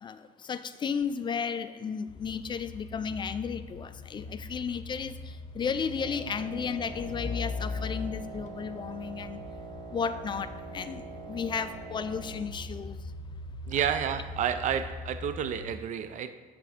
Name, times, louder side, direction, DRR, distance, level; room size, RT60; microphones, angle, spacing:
voice 1, 0.0-9.4 9.9-13.0, left 6 dB, 30° left, 12 dB, 0.3 m, -34 dB
sound 1, 2.1-15.7, left 3 dB, 45° left, 0.8 m, -41 dB
Wind instrument woodwind instrument, 5.9-12.6, right 6 dB, 75° right, 0.8 m, -44 dB
voice 2, 13.7-16.3, right 8 dB, 45° right, 11 dB, 0.4 m, -30 dB
7.7 x 3.4 x 4.9 m, 1.4 s
cardioid pair, 110°, 17 cm